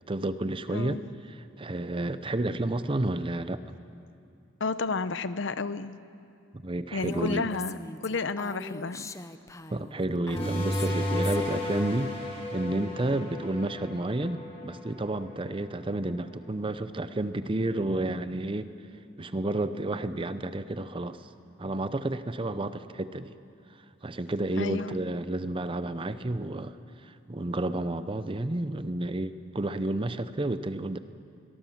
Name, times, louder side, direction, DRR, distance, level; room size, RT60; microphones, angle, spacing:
voice 1, 0.1-1.0 1.3-3.6 6.6-7.5 9.7-18.7 19.2-21.3 21.6-23.3 24.0-26.8 27.0-31.0, right 2 dB, 25° right, 12 dB, 0.6 m, -31 dB
voice 2, 0.7-1.0 4.6-6.0 6.9-9.1 24.5-25.0, left 4 dB, 65° left, 14 dB, 0.7 m, -31 dB
Female speech woman speaking, 7.0-11.6, left 2 dB, 15° left, 0.6 m, -41 dB
sound 1, 10.4-15.6, left 1 dB, 30° left, 4.9 m, -33 dB
22.5 x 19.0 x 7.3 m, 2.5 s
head